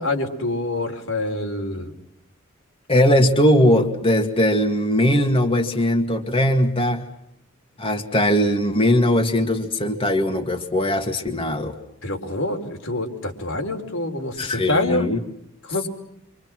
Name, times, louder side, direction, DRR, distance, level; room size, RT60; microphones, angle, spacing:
voice 1, 0.0-1.9 12.0-15.1 15.6-15.9, left 2 dB, 80° left, 3 dB, 4.6 m, -26 dB
voice 2, 2.9-7.1 7.8-11.8 14.4-15.2, left 1 dB, 25° left, 4 dB, 2.2 m, -20 dB
28.0 x 26.0 x 6.2 m, 0.77 s
head